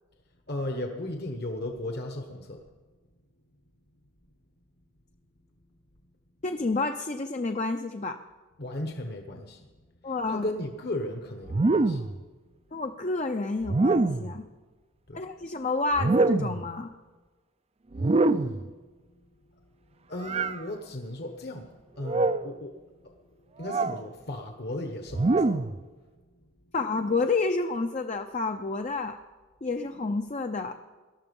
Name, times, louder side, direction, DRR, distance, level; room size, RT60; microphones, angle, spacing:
voice 1, 0.5-2.6 8.6-9.7 10.3-12.0 15.1-15.2 18.0-18.6 20.1-22.8 23.6-25.6, left 1 dB, 55° left, 4 dB, 1.3 m, -36 dB
voice 2, 6.4-8.2 10.0-10.4 12.7-14.4 15.1-16.9 26.7-29.2 29.6-30.7, left 3 dB, 35° left, 6 dB, 0.6 m, -29 dB
sound 1, 11.5-12.2 13.6-14.4 15.9-16.7 17.9-18.7 20.2-20.6 22.0-22.5 23.6-24.0 25.1-25.8, right 3 dB, 30° right, 0.4 m, -24 dB
19.0 x 12.5 x 5.4 m, 1.3 s
head